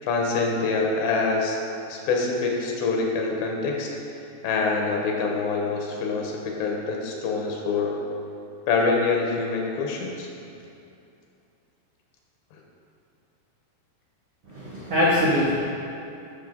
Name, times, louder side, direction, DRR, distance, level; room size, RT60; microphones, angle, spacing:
voice 1, 0.0-1.6 1.9-3.9 4.4-8.0 8.7-10.3, left 4 dB, 80° left, 0 dB, 3.2 m, -25 dB
voice 2, 14.5-15.6, left 1 dB, 90° right, -7 dB, 1.3 m, -22 dB
13.5 x 6.5 x 3.9 m, 2.7 s
omnidirectional pair, 5.0 m